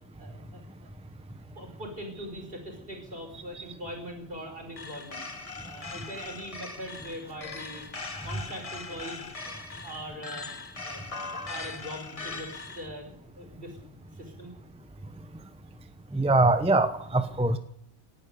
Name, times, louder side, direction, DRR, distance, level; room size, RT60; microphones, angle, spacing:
voice 1, 0.2-0.9 1.5-5.3 5.6-7.9 8.2-10.5 10.8-11.1 11.5-14.5, equal, 50° right, 2 dB, 5.4 m, -42 dB
sound 1, 4.8-12.9, left 4 dB, 30° left, 1.1 m, -40 dB
voice 2, 16.1-17.6, right 2 dB, 5° right, 9 dB, 0.8 m, -23 dB
18.5 x 11.0 x 6.9 m, 0.69 s
omnidirectional pair, 1.2 m